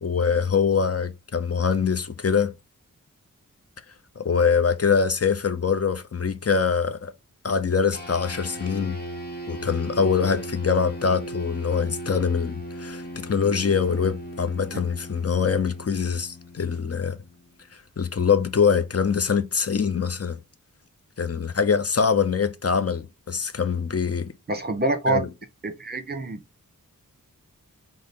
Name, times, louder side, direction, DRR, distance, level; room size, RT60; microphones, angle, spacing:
voice 1, 0.0-2.5 4.2-7.1 7.4-9.0 9.5-17.2 18.0-20.4 21.2-24.3 25.1-25.3, left 6 dB, 45° left, 0.7 m, -24 dB
sound 1, 7.9-17.6, equal, 30° left, 1.5 m, -38 dB
voice 2, 24.5-25.2 25.6-26.4, right 2 dB, 30° right, 1.1 m, -26 dB
4.8 x 2.1 x 4.2 m
wide cardioid pair, 55°, 34 cm